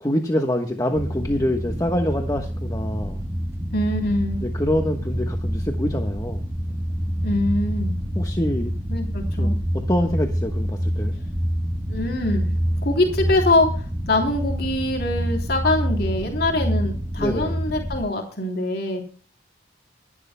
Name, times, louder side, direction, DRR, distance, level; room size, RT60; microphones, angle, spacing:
voice 1, 0.0-3.2 4.4-6.4 8.1-8.7 9.4-11.1 17.2-17.6, left 1 dB, 20° left, 4 dB, 1.2 m, -25 dB
sound 1, 0.9-18.0, equal, 15° right, 1.2 m, -27 dB
voice 2, 3.7-4.4 7.2-8.0 8.9-9.6 11.9-12.5 12.8-19.0, left 2 dB, 60° left, 1 dB, 3.2 m, -23 dB
25.0 x 11.0 x 2.2 m, 0.40 s
head